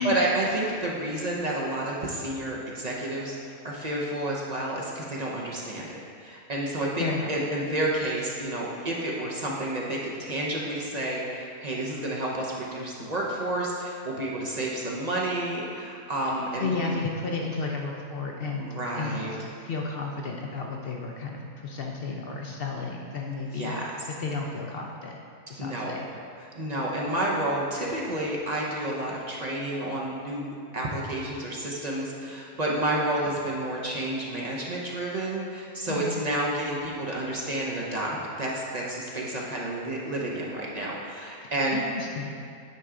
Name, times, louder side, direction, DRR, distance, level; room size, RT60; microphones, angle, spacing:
voice 1, 0.0-3.4 3.6-16.9 18.6-19.3 23.5-23.8 25.6-25.9 26.5-38.1 38.4-41.8, right 1 dB, 40° right, -4 dB, 0.6 m, -30 dB
voice 2, 7.0-7.3 16.6-23.8 24.2-25.2 25.5-26.1 35.9-36.2 41.4-42.4, left 3 dB, 60° left, 0 dB, 0.6 m, -32 dB
9.4 x 4.5 x 3.7 m, 2.3 s
omnidirectional pair, 1.5 m